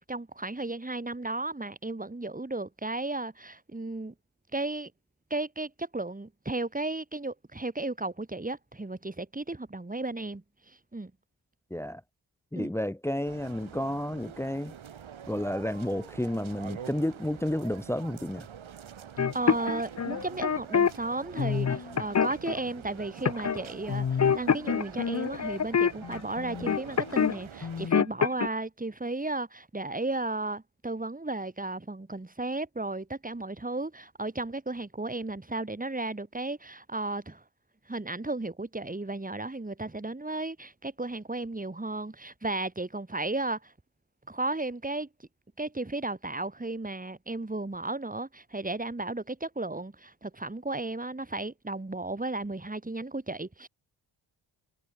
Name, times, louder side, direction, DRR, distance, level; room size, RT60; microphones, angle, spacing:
voice 1, 0.0-4.1 4.5-4.9 5.3-11.1 12.5-12.7 19.3-37.4 37.9-43.7 44.3-45.1 45.6-53.7, right 2 dB, 15° right, 4.2 m, -34 dB
voice 2, 11.7-12.0 12.5-14.7 15.3-18.5, left 1 dB, 5° left, 1.2 m, -31 dB
sound 1, 13.2-27.9, right 8 dB, 70° right, 5.4 m, -46 dB
sound 2, 19.2-20.9 21.4-22.6 23.2-23.6 23.9-27.4 27.6-28.5, left 7 dB, 35° left, 0.8 m, -26 dB
cardioid pair, 75°, 49 cm